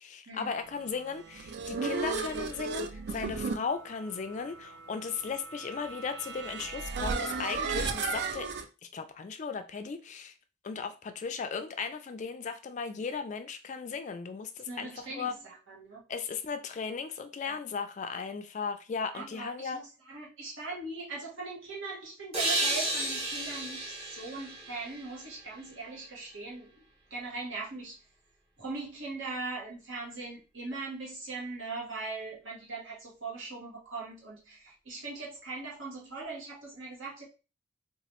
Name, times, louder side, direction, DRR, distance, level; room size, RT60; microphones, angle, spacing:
voice 1, 0.0-8.5 8.8-10.3 10.6-15.3 16.1-19.8, left 5 dB, 35° left, 0.3 m, -36 dB
sound 1, 1.1-8.6, right 4 dB, 55° right, 0.3 m, -35 dB
voice 2, 14.6-16.0 17.4-17.6 19.1-26.8 27.1-28.0 28.6-37.2, right 3 dB, 75° right, 1.2 m, -40 dB
sound 2, 22.3-25.8, right 1 dB, 30° right, 0.9 m, -33 dB
2.9 x 2.3 x 3.0 m
head